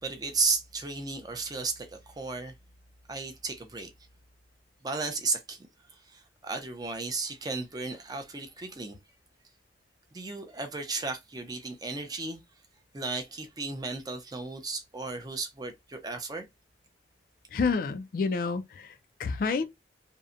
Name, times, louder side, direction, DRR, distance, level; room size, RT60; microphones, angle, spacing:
voice 1, 0.0-2.5 3.1-3.9 4.8-9.0 10.1-12.4 12.9-16.5, right 4 dB, 20° right, 0.4 m, -34 dB
voice 2, 17.5-19.7, left 4 dB, 50° left, 0.3 m, -29 dB
2.7 x 2.1 x 2.4 m
head